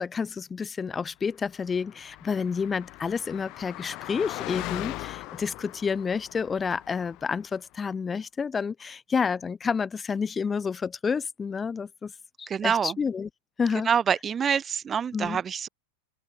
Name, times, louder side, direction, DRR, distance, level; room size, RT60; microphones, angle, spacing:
voice 1, 0.0-12.1 12.4-13.3 13.6-13.9 15.1-15.4, left 5 dB, 15° left, 1.5 m, -29 dB
Car passing by, 1.5-7.5, left 20 dB, 40° left, 5.0 m, -39 dB
voice 2, 12.5-13.0 13.8-15.7, right 7 dB, 20° right, 2.3 m, -26 dB
open air
figure-of-eight pair, 90°, 0 cm